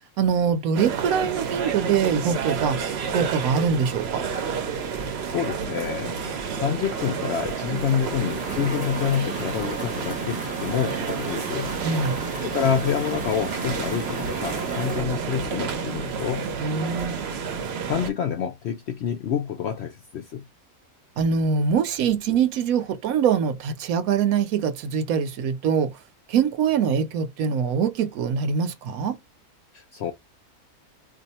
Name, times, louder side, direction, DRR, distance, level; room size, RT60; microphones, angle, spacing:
voice 1, 0.2-2.8 3.1-4.2 11.8-12.2 16.6-17.2 21.2-26.0 26.3-29.2, right 6 dB, 75° right, 1.0 m, -23 dB
sound 1, 0.7-18.1, right 6 dB, 55° right, 0.8 m, -30 dB
voice 2, 5.0-11.7 12.4-16.5 17.9-20.5 29.7-30.1, left 8 dB, 70° left, 0.6 m, -28 dB
sound 2, 5.6-15.0, right 2 dB, 5° right, 0.8 m, -37 dB
2.6 x 2.3 x 4.1 m
omnidirectional pair, 1.6 m